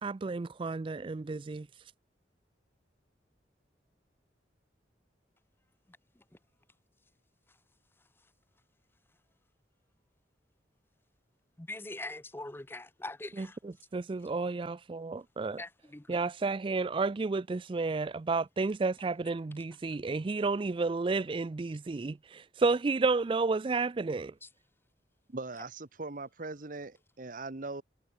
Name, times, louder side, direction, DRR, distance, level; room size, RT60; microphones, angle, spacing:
voice 1, 0.0-1.7 13.4-15.6 16.1-24.3, right 3 dB, 30° right, 0.4 m, -31 dB
voice 2, 11.6-13.6 15.6-16.2 24.4-24.5, left 2 dB, 15° left, 0.7 m, -42 dB
voice 3, 25.3-27.8, right 3 dB, 50° right, 1.1 m, -40 dB
head